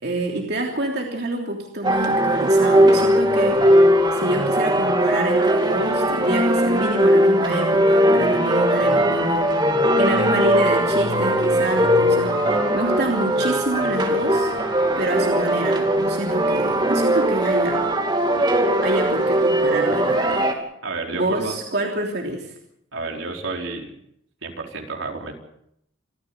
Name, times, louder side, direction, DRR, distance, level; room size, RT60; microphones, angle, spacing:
voice 1, 0.0-3.7 4.1-9.5 9.9-14.5 15.0-17.9 18.8-20.5 21.1-22.5, right 1 dB, 55° right, 0 dB, 3.2 m, -27 dB
sound 1, 1.8-20.5, equal, 25° right, 2.8 m, -19 dB
voice 2, 20.8-21.6 22.9-23.9 24.4-25.4, right 3 dB, 75° right, 2 dB, 4.5 m, -30 dB
27.5 x 14.5 x 8.0 m, 0.74 s
head